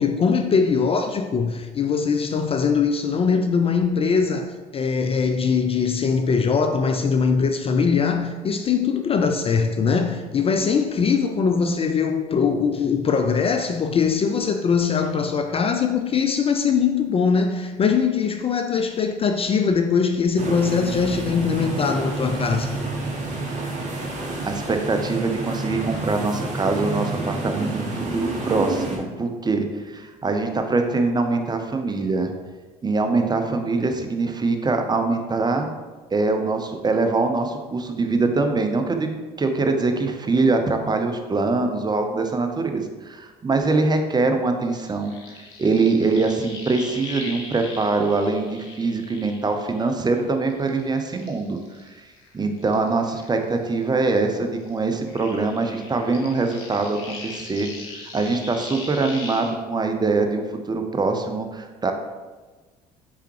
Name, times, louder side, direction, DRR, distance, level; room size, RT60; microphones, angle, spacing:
voice 1, 0.0-22.7, left 5 dB, 30° left, 0.3 m, -21 dB
sound 1, 20.4-29.0, right 2 dB, 40° right, 1.3 m, -29 dB
voice 2, 24.1-32.3 32.8-35.7 36.1-39.1 39.4-45.1 45.6-51.6 52.3-57.7 58.1-61.9, right 3 dB, 20° right, 0.5 m, -23 dB
sound 2, 44.6-50.1 50.5-53.8 54.1-59.5, left 3 dB, 70° left, 1.0 m, -40 dB
4.5 x 3.4 x 3.1 m
hypercardioid pair, 60°, 20 cm